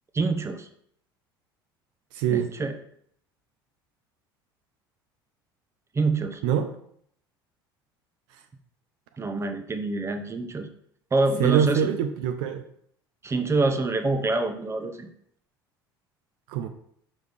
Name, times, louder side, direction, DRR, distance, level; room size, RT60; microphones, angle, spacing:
voice 1, 0.1-0.7 2.3-2.7 5.9-6.4 9.2-10.7 11.1-11.8 13.2-15.1, right 3 dB, 20° right, 7 dB, 0.9 m, -26 dB
voice 2, 2.1-2.5 6.4-6.7 11.4-12.6 16.5-16.7, right 8 dB, 65° right, 6 dB, 0.5 m, -24 dB
6.3 x 5.1 x 3.5 m, 0.67 s
figure-of-eight pair, 65°, 12 cm